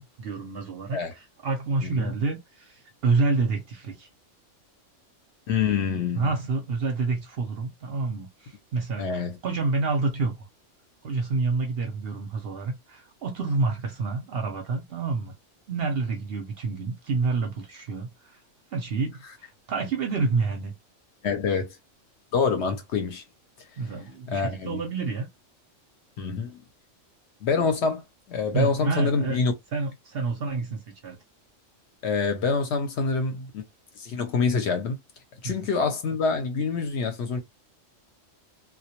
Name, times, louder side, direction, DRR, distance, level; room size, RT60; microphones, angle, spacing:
voice 1, 0.0-4.1 6.1-10.5 11.0-15.3 15.7-18.4 18.7-20.7 23.8-25.3 28.5-29.4 29.7-31.2 35.4-35.6, right 3 dB, 60° right, 0.7 m, -28 dB
voice 2, 5.5-6.3 9.0-9.4 21.2-21.8 22.3-23.2 24.3-24.8 26.2-26.6 27.4-29.5 32.0-33.6 34.0-35.0 35.4-37.4, left 5 dB, 65° left, 0.8 m, -26 dB
2.2 x 2.2 x 2.8 m
omnidirectional pair, 1.3 m